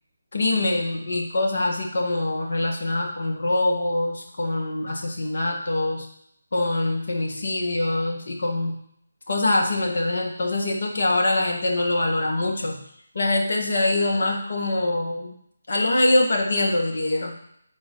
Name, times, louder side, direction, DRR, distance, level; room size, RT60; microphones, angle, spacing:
voice 1, 0.3-6.0 6.5-8.8 9.3-12.8 13.1-15.3 15.7-17.3, left 2 dB, 60° left, 0 dB, 1.6 m, -24 dB
5.0 x 4.1 x 5.3 m, 0.73 s
figure-of-eight pair, 160°, 0 cm